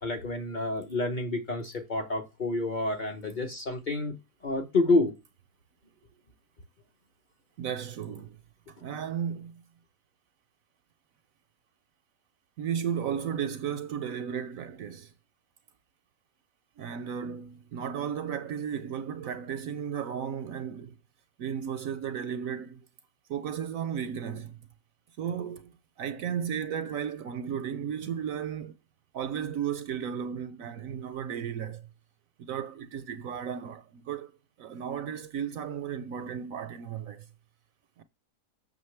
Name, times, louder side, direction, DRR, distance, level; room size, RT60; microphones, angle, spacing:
voice 1, 0.0-4.1 4.4-5.1 8.8-8.9, left 2 dB, 35° left, 0.9 m, -28 dB
voice 2, 7.6-8.4 8.8-9.6 12.6-15.1 16.8-21.0 21.4-22.9 23.3-24.6 25.2-25.7 26.0-28.7 29.1-31.9 32.4-34.3 34.6-37.3 38.0-38.1, right 8 dB, 65° right, 0.9 m, -34 dB
7.1 x 6.4 x 3.2 m
omnidirectional pair, 1.7 m